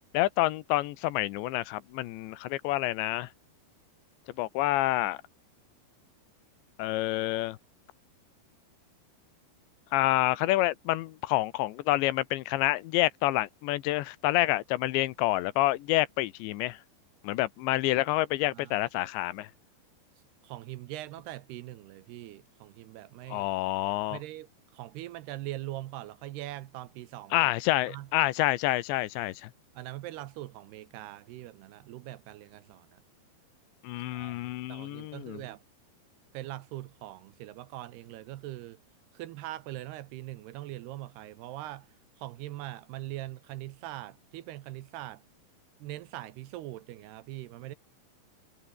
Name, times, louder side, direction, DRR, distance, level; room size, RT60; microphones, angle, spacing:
voice 1, 0.1-3.3 4.4-5.2 6.8-7.6 9.9-16.8 17.2-19.5 23.3-24.2 27.3-29.5 33.8-35.4, left 17 dB, 85° left, 3.2 m, -28 dB
voice 2, 20.4-23.5 24.1-27.5 27.9-28.1 29.7-33.0 34.1-34.4 34.7-35.6 36.3-38.8 39.1-41.9 42.2-45.2 45.8-47.8, right 15 dB, 75° right, 2.8 m, -42 dB
omnidirectional pair, 5.1 m